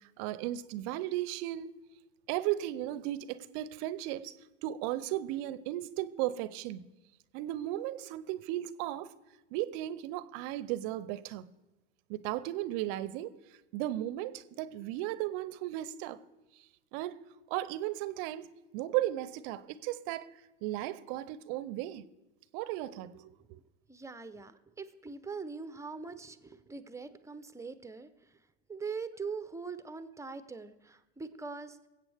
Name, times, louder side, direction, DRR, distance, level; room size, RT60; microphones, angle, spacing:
voice 1, 0.0-1.7 2.3-4.3 4.6-6.8 7.3-9.1 9.5-11.5 12.1-13.3 13.7-16.2 16.9-17.2 17.5-18.5 18.7-20.3 20.6-22.0 22.5-23.6, right 14 dB, 50° right, 0.7 m, -35 dB
voice 2, 23.9-28.1 28.7-31.8, right 4 dB, 10° right, 0.7 m, -42 dB
24.0 x 8.2 x 3.5 m
hypercardioid pair, 90°, 36 cm